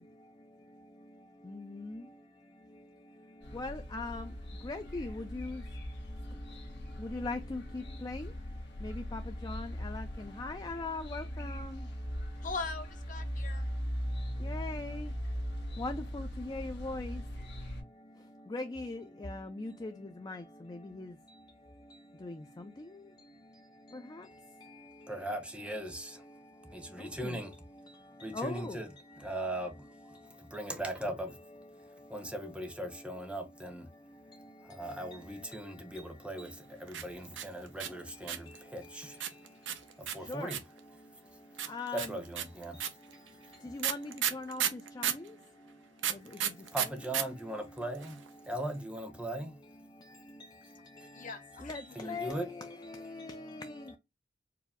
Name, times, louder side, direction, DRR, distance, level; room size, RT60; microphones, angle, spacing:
sound 1, 3.4-17.8, equal, 65° left, 1.4 m, -40 dB
voice 1, 3.5-4.2 4.7-5.6 7.1-7.6 8.0-8.2 8.8-10.0 10.4-11.7 14.5-15.1 15.8-17.1 18.5-19.9 20.3-20.4 21.0-21.1 22.2-22.3 28.4-28.8 40.3-40.5 41.7-42.0 43.7-44.6 45.0-45.1 51.6-51.8 52.1-52.3 53.2-53.3, left 3 dB, 20° left, 0.4 m, -39 dB
voice 2, 12.4-13.7 51.1-52.2, left 4 dB, 45° left, 0.8 m, -41 dB
voice 3, 25.1-26.3 26.6-27.6 28.2-31.4 31.7-33.9 34.6-39.3 39.9-41.0 41.3-43.0 43.4-43.5 46.3-49.6 51.0-51.1 51.9-52.5 53.9-54.0, right 1 dB, 5° right, 0.7 m, -40 dB
sound 2, 36.9-38.6 39.2-40.8 41.6-45.3 46.0-47.2 47.5-47.6 47.8-48.3, right 10 dB, 80° right, 0.7 m, -33 dB
4.7 x 2.0 x 3.5 m
head